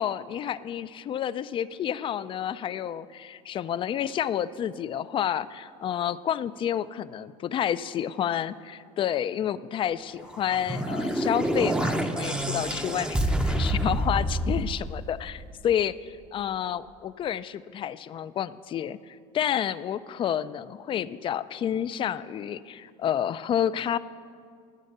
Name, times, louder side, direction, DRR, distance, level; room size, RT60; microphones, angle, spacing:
voice 1, 0.0-24.0, left 9 dB, 35° left, 16 dB, 0.4 m, -30 dB
sound 1, 10.3-15.6, right 1 dB, 5° right, 0.6 m, -28 dB
13.0 x 6.3 x 6.7 m, 2.2 s
supercardioid pair, 110°, 16 cm